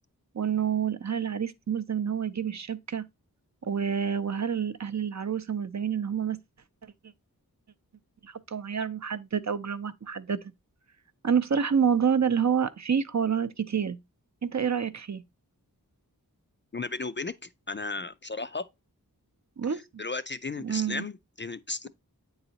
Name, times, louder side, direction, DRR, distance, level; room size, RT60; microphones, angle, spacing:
voice 1, 0.3-3.0 3.6-6.4 8.2-10.4 11.2-14.0 14.4-15.2 19.6-19.8 20.6-21.1, right 7 dB, 50° right, 0.5 m, -28 dB
voice 2, 16.7-18.7 19.7-21.9, left 3 dB, 35° left, 0.4 m, -35 dB
8.8 x 4.0 x 2.7 m
wide cardioid pair, 55°, 37 cm